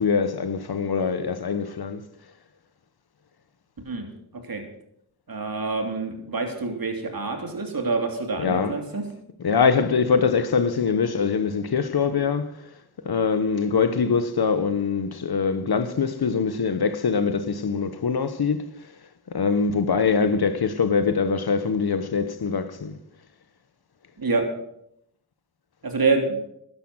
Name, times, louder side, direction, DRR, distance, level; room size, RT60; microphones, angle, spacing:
voice 1, 0.0-2.0 8.4-8.8 9.4-12.5 13.0-18.6 19.3-22.9, left 5 dB, 70° left, 1.2 m, -23 dB
voice 2, 5.3-9.0 24.2-24.4 25.8-26.4, right 3 dB, 60° right, 3.2 m, -26 dB
12.0 x 11.5 x 6.3 m
cardioid pair, 50°, 39 cm